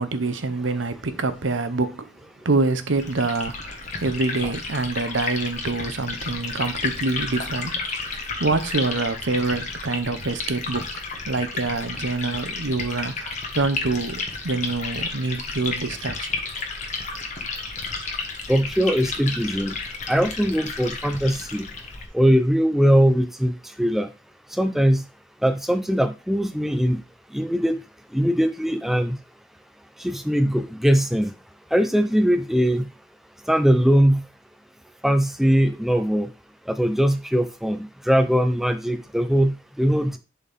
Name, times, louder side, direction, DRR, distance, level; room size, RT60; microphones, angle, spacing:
voice 1, 0.0-2.1 2.4-7.8 8.4-16.3, right 3 dB, 75° right, 0.9 m, -26 dB
Liquid, 3.0-22.1, left 4 dB, 40° left, 1.4 m, -32 dB
voice 2, 18.5-19.7 20.1-21.7 22.1-24.1 24.6-25.0 25.4-27.0 27.3-27.8 28.1-29.2 30.0-31.3 31.7-32.9 33.5-34.2 35.0-36.3 36.8-40.2, equal, ahead, 0.6 m, -21 dB
11.0 x 4.4 x 3.5 m
head